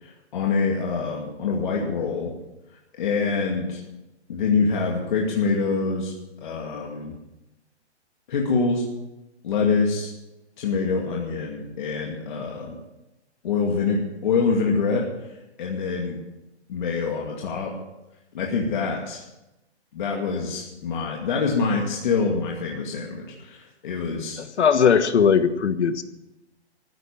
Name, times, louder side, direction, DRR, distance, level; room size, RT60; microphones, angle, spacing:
voice 1, 0.0-2.3 3.0-3.8 4.3-7.1 8.3-8.8 9.4-10.1 10.6-12.8 13.4-15.1 15.6-16.2 16.7-17.7 18.3-19.2 19.9-24.4, left 4 dB, 45° left, -1 dB, 2.4 m, -25 dB
voice 2, 24.4-26.0, left 6 dB, 75° left, 11 dB, 1.5 m, -19 dB
15.0 x 10.0 x 7.4 m, 0.96 s
hypercardioid pair, 165°, 34 cm